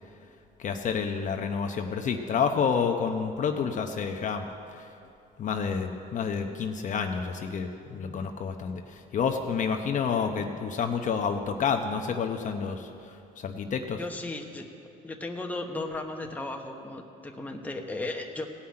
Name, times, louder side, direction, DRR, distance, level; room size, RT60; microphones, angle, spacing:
voice 1, 0.6-4.4 5.4-12.9 13.4-14.0, left 6 dB, 50° left, 4 dB, 0.8 m, -29 dB
voice 2, 14.0-14.7 15.0-18.5, left 2 dB, 10° left, 2 dB, 1.1 m, -35 dB
17.0 x 5.8 x 8.7 m, 2.6 s
cardioid pair, 110°, 17 cm